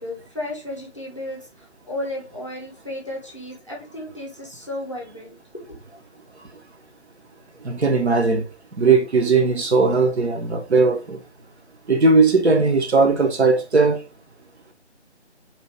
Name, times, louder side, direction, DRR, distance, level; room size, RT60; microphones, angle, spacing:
voice 1, 0.0-5.4, left 1 dB, 25° left, 0.6 m, -33 dB
voice 2, 7.6-8.4 8.8-11.2 11.9-14.0, right 4 dB, 65° right, 0.7 m, -18 dB
2.8 x 2.2 x 3.1 m
figure-of-eight pair, 155°, 35 cm